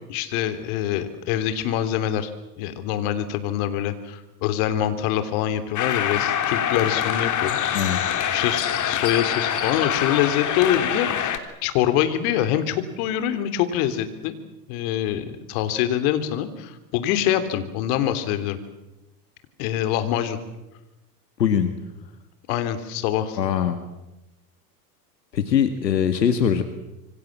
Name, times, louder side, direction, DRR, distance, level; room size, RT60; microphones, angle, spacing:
voice 1, 0.1-2.3 2.6-7.6 8.3-14.3 14.7-18.6 19.6-20.4 22.5-23.4, left 11 dB, 60° left, 10 dB, 3.4 m, -25 dB
sound 1, 5.8-11.4, left 9 dB, 35° left, 3.5 m, -25 dB
voice 2, 21.4-21.8 23.4-23.8 25.3-26.6, left 8 dB, 85° left, 8 dB, 2.1 m, -21 dB
27.0 x 24.5 x 7.5 m, 0.99 s
hypercardioid pair, 90°, 49 cm